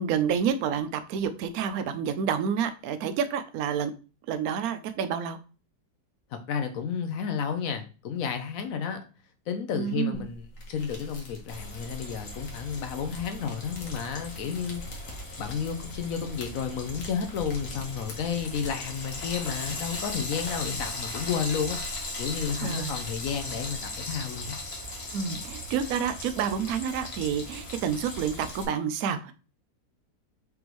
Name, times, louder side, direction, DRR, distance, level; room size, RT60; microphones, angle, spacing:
voice 1, 0.0-3.9 4.3-5.4 9.7-10.2 22.6-22.9 25.1-29.3, right 7 dB, 70° right, 11 dB, 0.9 m, -29 dB
voice 2, 6.3-9.0 9.5-14.8 15.4-21.8 22.2-24.6, left 7 dB, 65° left, 7 dB, 0.9 m, -32 dB
sound 1, 10.1-23.8, left 1 dB, 80° left, 1.7 m, -45 dB
Frying (food), 11.5-28.6, left 1 dB, 40° left, 1.3 m, -38 dB
5.1 x 3.5 x 3.0 m, 0.35 s
omnidirectional pair, 1.9 m